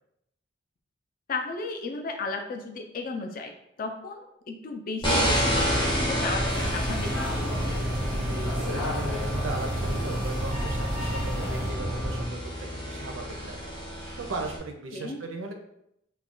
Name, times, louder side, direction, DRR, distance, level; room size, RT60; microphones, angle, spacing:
voice 1, 1.3-3.5 3.8-7.2 14.9-15.2, left 3 dB, 45° left, 4 dB, 0.3 m, -34 dB
sound 1, 5.0-14.6, equal, 20° left, 0.7 m, -31 dB
sound 2, 5.1-12.2, right 1 dB, 15° right, 0.5 m, -30 dB
sound 3, 6.5-11.7, left 1 dB, 85° left, 0.9 m, -35 dB
voice 2, 8.1-13.7 14.2-15.5, right 3 dB, 70° right, 4 dB, 0.4 m, -38 dB
2.3 x 2.2 x 3.6 m, 0.78 s
head